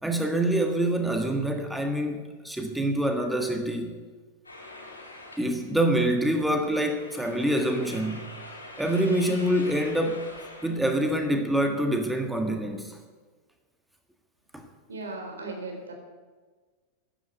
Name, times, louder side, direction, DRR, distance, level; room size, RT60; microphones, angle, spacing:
voice 1, 0.0-4.0 5.4-8.3 8.8-10.3 10.6-13.0 14.5-14.7, right 1 dB, 5° right, 1.7 m, -26 dB
sound 1, 4.4-10.7, left 2 dB, 80° left, 4.0 m, -45 dB
voice 2, 14.9-15.9, right 2 dB, 70° right, 4.0 m, -37 dB
15.0 x 10.0 x 9.1 m
figure-of-eight pair, 90°, 0 cm